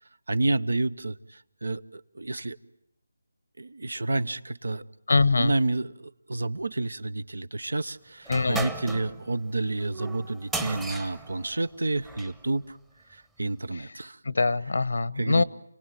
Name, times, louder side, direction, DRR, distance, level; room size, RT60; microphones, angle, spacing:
voice 1, 0.3-2.6 3.6-4.8 5.4-12.8 13.1-14.2 15.2-15.4, right 2 dB, 80° right, 19 dB, 1.0 m, -30 dB
voice 2, 5.1-5.5 8.3-8.6 14.2-15.4, left 3 dB, 70° left, 19 dB, 0.9 m, -23 dB
sound 1, 8.3-12.4, right 3 dB, 5° right, 0.9 m, -36 dB
28.5 x 18.5 x 9.3 m, 0.79 s
figure-of-eight pair, 165°, 0 cm